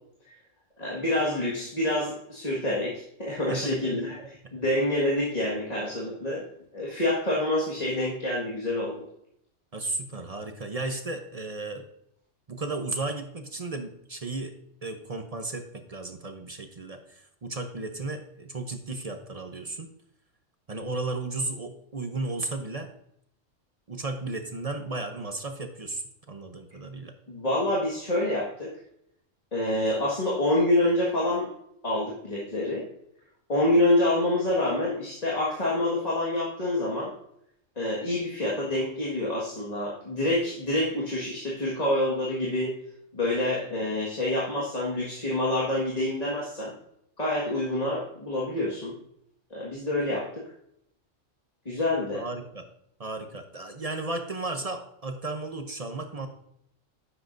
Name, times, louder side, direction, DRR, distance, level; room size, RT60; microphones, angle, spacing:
voice 1, 0.8-6.4 6.7-9.0 27.3-28.8 29.5-31.5 31.8-32.8 33.5-37.1 37.7-42.7 43.1-46.7 47.2-49.0 49.5-50.4 51.6-52.2, left 1 dB, 30° left, -5 dB, 1.8 m, -27 dB
voice 2, 3.5-4.0 9.7-11.8 12.5-14.5 14.8-19.9 20.7-22.9 23.9-27.1 52.1-52.6 53.0-56.3, right 2 dB, 35° right, 6 dB, 0.7 m, -34 dB
9.9 x 7.5 x 2.6 m, 0.73 s
omnidirectional pair, 1.3 m